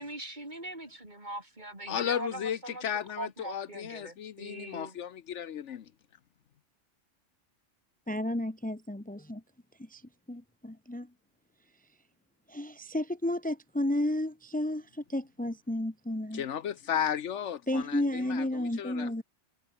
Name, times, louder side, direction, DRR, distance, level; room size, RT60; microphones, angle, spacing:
voice 1, 0.0-2.8 3.2-5.0, right 1 dB, 35° right, 4.9 m, -41 dB
voice 2, 1.9-5.9 16.3-19.1, left 9 dB, 70° left, 1.1 m, -34 dB
voice 3, 8.1-9.4 9.8-10.0 10.3-11.1 12.5-16.4 17.7-19.2, left 1 dB, 5° left, 1.4 m, -32 dB
omnidirectional pair, 1.3 m